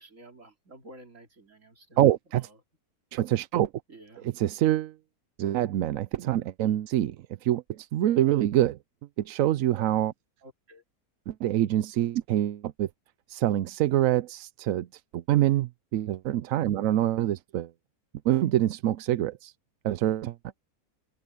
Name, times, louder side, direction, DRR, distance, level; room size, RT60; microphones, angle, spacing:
voice 1, 0.0-2.1 2.3-2.6 3.9-4.3 10.4-10.8 16.9-17.1, right 1 dB, 50° right, 3.7 m, -51 dB
voice 2, 2.0-2.5 3.1-3.7 4.2-5.0 5.4-7.2 7.4-8.8 9.2-10.1 11.3-12.9 13.3-14.9 15.1-17.7 18.2-19.5 19.8-20.4, right 13 dB, 70° right, 0.9 m, -25 dB
open air
omnidirectional pair, 1.6 m